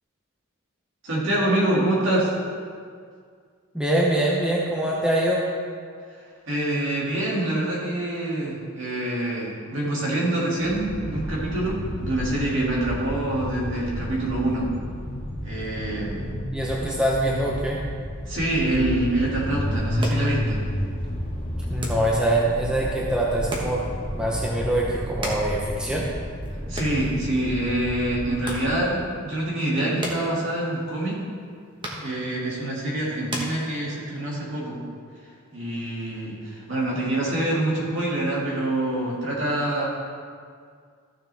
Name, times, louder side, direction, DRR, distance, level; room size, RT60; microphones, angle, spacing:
voice 1, 1.0-2.3 6.5-14.7 15.4-16.3 18.3-20.6 26.7-31.2 32.0-34.8 35.5-39.9, right 1 dB, 60° right, -5 dB, 2.4 m, -26 dB
voice 2, 3.7-5.4 16.5-17.8 21.7-23.8 24.1-26.1, right 1 dB, 5° right, -3 dB, 0.8 m, -24 dB
sound 1, 10.6-28.9, equal, 25° left, 1.2 m, -31 dB
sound 2, 19.7-34.2, right 1 dB, 20° right, 1.3 m, -39 dB
14.0 x 6.6 x 3.5 m, 2.1 s
head